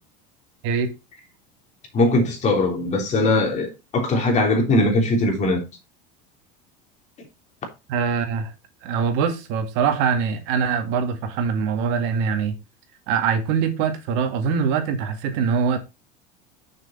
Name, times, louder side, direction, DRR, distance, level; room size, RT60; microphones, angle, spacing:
voice 1, 1.9-5.6, left 2 dB, 35° left, 3.2 m, -20 dB
voice 2, 7.9-8.5 8.8-12.5 13.1-15.8, right 6 dB, 65° right, 2.1 m, -23 dB
6.5 x 6.3 x 4.3 m
supercardioid pair, 125°, 21 cm